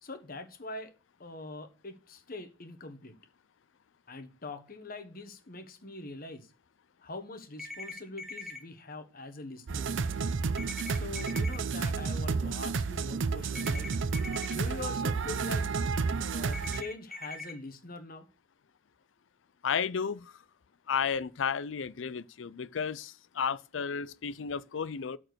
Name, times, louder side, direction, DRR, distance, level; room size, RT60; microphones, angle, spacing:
voice 1, 0.0-0.9 1.2-3.2 4.1-6.5 7.0-9.9 10.9-13.9 14.5-15.7 16.2-18.3, left 2 dB, 50° left, 1.4 m, -43 dB
sound 1, 7.6-8.6 10.6-11.6 13.6-14.5 16.5-17.5, left 3 dB, ahead, 1.2 m, -42 dB
sound 2, 9.7-16.8, right 4 dB, 80° right, 0.5 m, -31 dB
voice 2, 19.6-20.3 20.9-25.2, left 6 dB, 90° left, 0.5 m, -33 dB
13.0 x 4.5 x 6.3 m
head